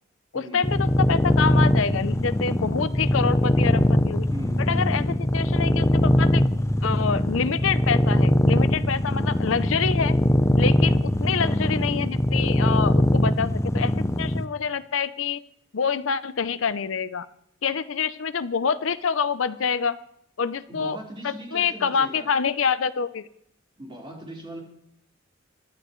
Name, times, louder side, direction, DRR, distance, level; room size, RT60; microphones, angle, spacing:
voice 1, 0.3-4.3 4.6-6.4 6.8-10.1 10.6-15.4 15.7-17.3 17.6-20.0 20.4-21.0 21.2-23.3, left 6 dB, 75° left, 14 dB, 0.6 m, -26 dB
sound 1, 0.6-14.4, left 1 dB, 15° left, 0.7 m, -21 dB
voice 2, 4.3-5.0 10.7-10.9 20.7-22.3 23.8-24.6, equal, 25° right, -3 dB, 4.2 m, -39 dB
24.5 x 12.0 x 3.2 m, 0.73 s
head